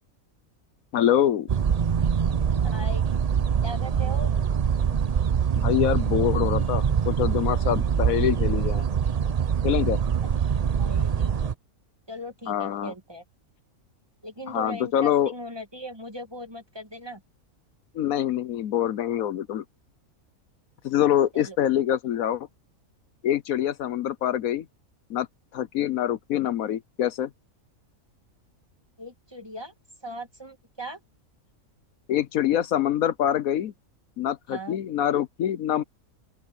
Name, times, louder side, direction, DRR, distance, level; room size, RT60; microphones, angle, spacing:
voice 1, 0.9-1.5 5.6-8.9 9.6-10.0 12.5-12.9 14.5-15.3 17.9-19.6 20.8-22.5 23.2-24.7 25.1-25.3 25.5-27.3 32.1-33.7 34.2-35.8, left 11 dB, 75° left, 1.1 m, -25 dB
sound 1, 1.5-11.5, right 7 dB, 60° right, 0.4 m, -24 dB
voice 2, 2.6-3.0 3.6-4.3 10.2-10.3 10.8-11.3 12.1-13.2 14.2-17.2 21.3-21.6 29.0-29.7 30.0-31.0 34.5-34.8, right 1 dB, 15° right, 2.1 m, -38 dB
open air
omnidirectional pair, 1.5 m